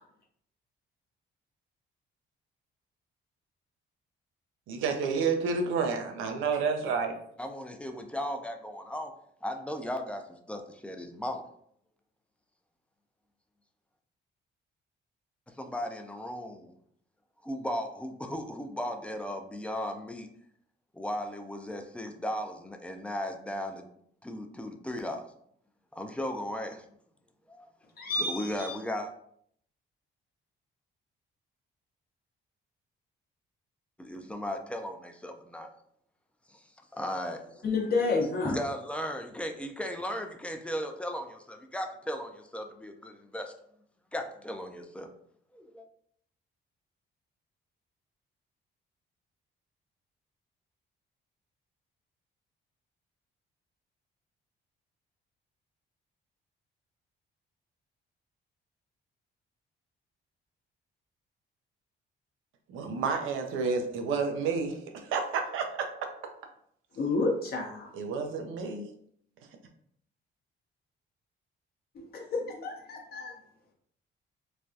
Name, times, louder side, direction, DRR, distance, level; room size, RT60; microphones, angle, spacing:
voice 1, 4.7-7.2 62.7-65.9 67.9-68.9, right 5 dB, 90° right, 4 dB, 0.6 m, -30 dB
voice 2, 7.4-9.1 9.4-11.4 15.6-16.7 17.4-20.3 20.9-23.9 24.2-25.3 25.9-26.8 27.5-27.7 28.2-29.1 34.0-35.7 36.5-36.6 36.9-37.6 38.4-43.5 44.1-45.1 45.5-45.9, equal, 5° left, 5 dB, 0.4 m, -36 dB
voice 3, 28.0-28.8 37.6-38.5 67.0-67.9 71.9-73.3, left 3 dB, 50° left, 0 dB, 0.7 m, -30 dB
3.2 x 2.3 x 2.6 m, 0.67 s
cardioid pair, 90°, 20 cm